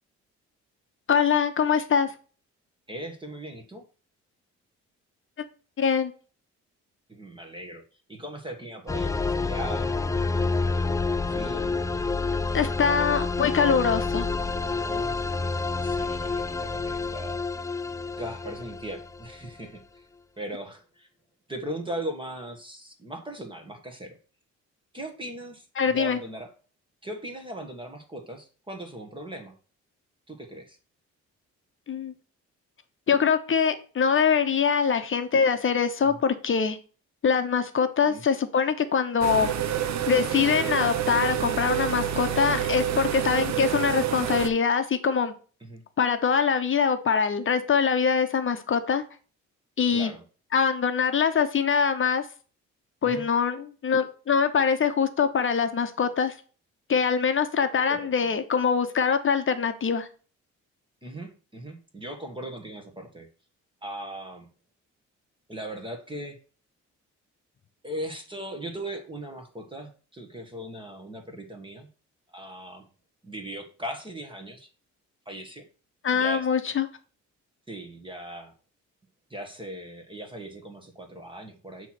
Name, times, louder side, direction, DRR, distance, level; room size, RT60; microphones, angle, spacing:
voice 1, 1.1-2.1 5.8-6.1 12.5-14.3 25.8-26.2 31.9-32.1 33.1-36.8 37.2-39.5 40.1-45.3 46.0-49.0 49.8-50.1 50.5-52.2 53.0-56.3 56.9-60.1 76.0-76.9, left 6 dB, 40° left, 9 dB, 0.8 m, -23 dB
voice 2, 2.9-3.8 7.1-7.8 8.1-9.9 11.3-11.8 14.8-15.4 15.8-17.4 18.2-20.0 20.4-21.1 21.5-24.2 24.9-26.5 27.0-29.5 30.3-30.8 36.0-36.2 38.0-38.2 42.4-42.5 45.6-45.8 49.9-50.2 53.0-53.2 57.9-58.3 61.0-63.3 63.8-64.5 65.5-66.4 67.8-71.9 72.3-72.8 73.2-74.7 75.2-75.6 76.1-76.5 77.7-78.5 79.3-81.9, right 1 dB, 15° right, 4 dB, 1.5 m, -39 dB
sound 1, 8.9-19.5, left 3 dB, 10° left, 0.4 m, -28 dB
sound 2, 39.2-44.5, right 10 dB, 65° right, 0.8 m, -28 dB
8.1 x 3.1 x 5.8 m, 0.38 s
cardioid pair, 90°, 30 cm